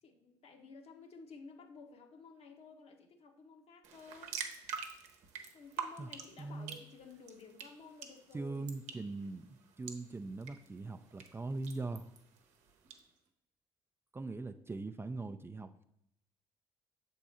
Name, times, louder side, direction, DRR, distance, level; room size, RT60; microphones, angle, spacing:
voice 1, 0.0-4.4 5.3-8.7, left 4 dB, 55° left, 4 dB, 1.1 m, -54 dB
sound 1, 3.8-13.0, right 7 dB, 70° right, 0.9 m, -47 dB
voice 2, 6.4-6.8 8.3-12.1 14.1-15.8, right 3 dB, 20° right, 9 dB, 0.4 m, -41 dB
6.9 x 3.7 x 4.3 m, 0.75 s
hypercardioid pair, 55°, 12 cm